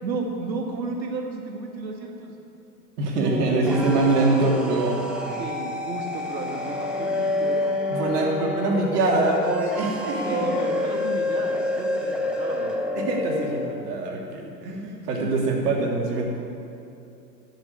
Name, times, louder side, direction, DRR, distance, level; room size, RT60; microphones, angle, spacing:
voice 1, 0.0-2.3 3.2-4.9 5.4-7.7 10.1-12.8 15.1-15.4, right 3 dB, 85° right, 2 dB, 2.0 m, -32 dB
voice 2, 3.0-5.0 7.9-10.4 13.0-16.3, right 2 dB, 65° right, -1 dB, 3.1 m, -24 dB
sound 1, 3.3-13.7, left 2 dB, ahead, 1.5 m, -28 dB
12.0 x 7.2 x 8.4 m, 2.8 s
hypercardioid pair, 105°, 50 cm